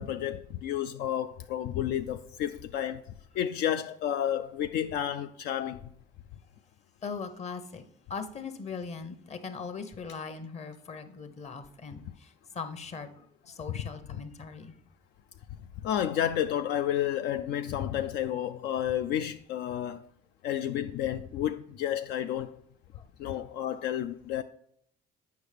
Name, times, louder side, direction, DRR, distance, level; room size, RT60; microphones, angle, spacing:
voice 1, 0.0-3.0 3.3-5.8 15.8-20.1 20.4-22.6 23.2-24.4, left 10 dB, 80° left, 0.4 m, -31 dB
voice 2, 7.0-13.1 13.4-14.7 22.9-23.0, left 5 dB, 40° left, 1.0 m, -40 dB
8.0 x 5.7 x 3.4 m
cardioid pair, 110°, 17 cm